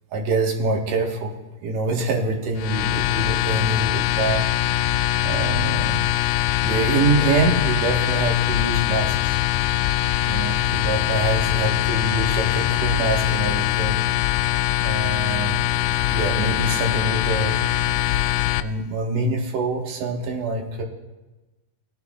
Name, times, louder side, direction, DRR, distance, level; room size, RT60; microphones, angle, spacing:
voice 1, 0.1-1.3 1.6-4.4 5.2-6.1 6.6-9.4 10.3-14.0 14.8-15.6 16.1-17.6 18.6-20.8, right 3 dB, 80° right, 0 dB, 3.0 m, -25 dB
sound 1, 2.6-18.6, left 13 dB, 85° left, 2.0 m, -22 dB
19.0 x 11.5 x 2.4 m, 1.1 s
omnidirectional pair, 3.7 m